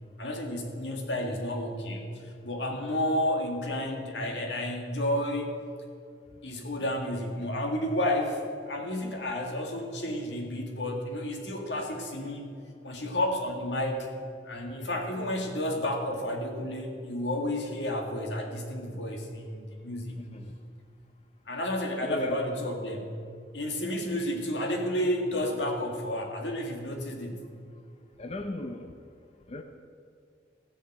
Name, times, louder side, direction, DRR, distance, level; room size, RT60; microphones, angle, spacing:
voice 1, 0.2-2.1 2.4-5.5 6.4-12.5 12.8-14.1 14.4-20.2 21.5-23.1 23.5-27.4, left 1 dB, 80° left, 2 dB, 1.9 m, -31 dB
voice 2, 20.2-20.5 22.0-22.4 28.2-28.9 29.5-29.6, left 1 dB, 35° left, 5 dB, 0.6 m, -36 dB
16.0 x 5.6 x 7.8 m, 2.3 s
head